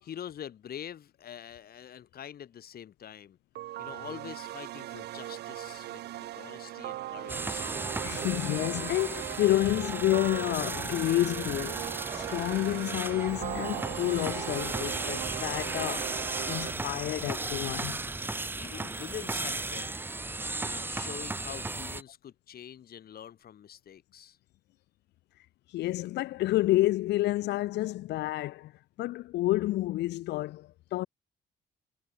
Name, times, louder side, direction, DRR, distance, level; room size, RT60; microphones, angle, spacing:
voice 1, 0.0-3.4 3.8-7.7 18.6-19.9 20.6-24.4, left 9 dB, 60° left, 3.2 m, -45 dB
sound 1, 3.6-16.7, right 15 dB, 75° right, 0.6 m, -39 dB
sound 2, 7.3-22.0, right 2 dB, 10° right, 0.5 m, -35 dB
voice 2, 8.0-11.8 12.1-16.1 16.5-18.0 25.7-28.7 29.0-31.1, left 16 dB, 80° left, 0.7 m, -29 dB
supercardioid pair, 70°, 17 cm